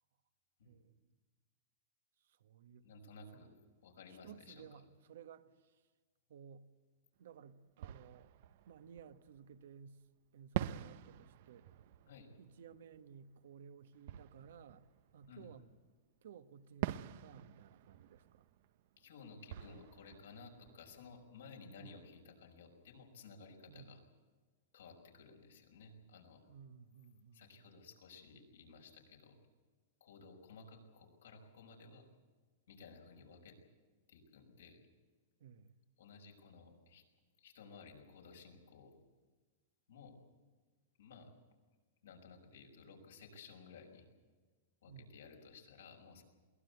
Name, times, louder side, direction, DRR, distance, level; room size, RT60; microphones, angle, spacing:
voice 1, 0.6-1.1 2.2-3.0 3.3-3.5 4.1-5.8 6.3-6.7 7.2-8.3 8.6-10.0 10.3-11.9 12.4-14.9 15.1-15.7 16.2-18.4 21.8-22.0 23.7-23.9 26.5-27.7 35.4-35.8 44.9-45.1, right 7 dB, 75° right, 1.2 m, -57 dB
voice 2, 2.8-4.8 12.1-12.3 15.3-15.5 19.0-24.0 24.7-26.5 27.3-29.4 30.0-32.1 32.7-33.6 34.1-34.8 36.0-37.1 37.4-39.0 39.9-40.2 41.0-41.3 42.0-44.1 44.8-46.2, left 4 dB, 85° left, 5.6 m, -56 dB
Fireworks, 7.2-7.3 7.8-9.7 10.5-15.9 16.8-21.5, right 13 dB, 60° right, 0.7 m, -46 dB
22.5 x 17.5 x 8.3 m
hypercardioid pair, 135°, 0 cm